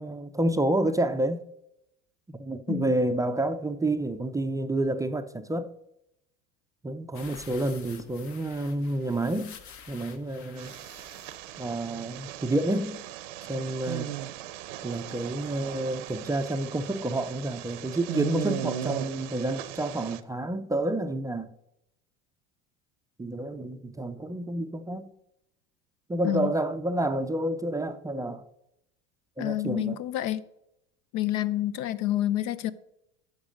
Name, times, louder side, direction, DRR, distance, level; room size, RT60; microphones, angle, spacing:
voice 1, 0.0-1.4 2.3-5.7 6.8-9.6 9.9-10.7 11.6-13.0 13.5-14.1 14.8-21.5 23.2-25.1 26.1-28.4 29.4-30.0, right 1 dB, 10° right, 0.4 m, -29 dB
sound 1, 7.1-12.4 12.7-12.8 13.1-13.2, left 7 dB, 50° left, 1.3 m, -49 dB
sound 2, 10.6-20.2, right 11 dB, 85° right, 0.8 m, -37 dB
voice 2, 29.4-30.4 31.1-32.7, left 14 dB, 65° left, 0.7 m, -28 dB
9.7 x 6.6 x 5.1 m
supercardioid pair, 100°, 36 cm